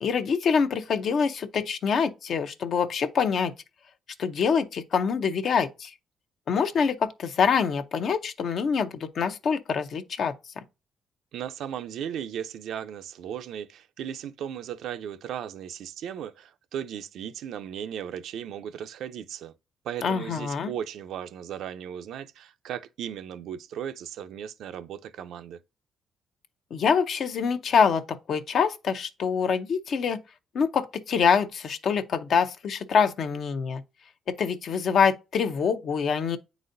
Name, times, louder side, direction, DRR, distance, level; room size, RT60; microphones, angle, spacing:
voice 1, 0.0-3.5 4.2-5.9 6.5-10.6 20.0-20.7 26.7-30.2 30.5-33.8 34.3-36.4, left 6 dB, 60° left, 0.6 m, -25 dB
voice 2, 11.3-19.5 19.8-25.6, right 9 dB, 75° right, 0.4 m, -36 dB
9.0 x 4.0 x 2.6 m
cardioid pair, 90°, 0 cm